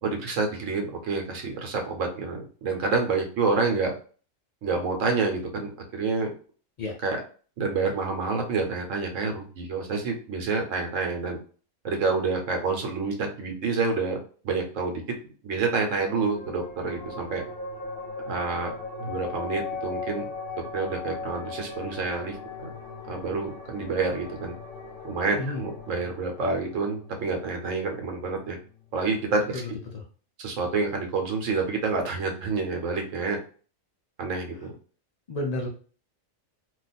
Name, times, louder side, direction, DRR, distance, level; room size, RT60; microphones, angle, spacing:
voice 1, 0.0-3.9 4.6-6.3 7.0-7.2 7.6-11.4 11.8-14.2 14.4-15.0 15.4-17.4 18.2-18.7 19.0-20.2 20.7-22.4 23.1-24.5 25.0-28.6 28.9-29.6 30.4-33.4 34.2-34.7, right 4 dB, 75° right, 3 dB, 1.0 m, -28 dB
sound 1, 16.1-28.9, left 4 dB, 45° left, 0.8 m, -39 dB
voice 2, 35.3-35.7, left 2 dB, 80° left, -1 dB, 0.3 m, -30 dB
2.4 x 2.3 x 4.0 m, 0.40 s
omnidirectional pair, 1.4 m